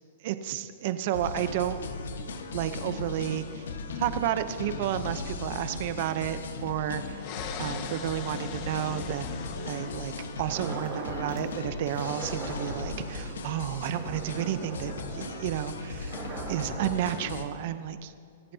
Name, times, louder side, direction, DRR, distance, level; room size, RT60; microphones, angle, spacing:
voice 1, 0.2-1.9 2.5-3.7 3.9-7.3 7.6-16.2 16.5-18.1, right 11 dB, 55° right, 11 dB, 0.8 m, -32 dB
sound 1, 1.1-17.5, left 3 dB, 80° left, 1.4 m, -37 dB
sound 2, 7.2-11.1, left 7 dB, 45° left, 1.2 m, -42 dB
sound 3, 10.5-11.5 11.9-17.2, right 4 dB, 40° right, 3.9 m, -40 dB
26.5 x 15.5 x 2.9 m, 2.3 s
hypercardioid pair, 130°, 0 cm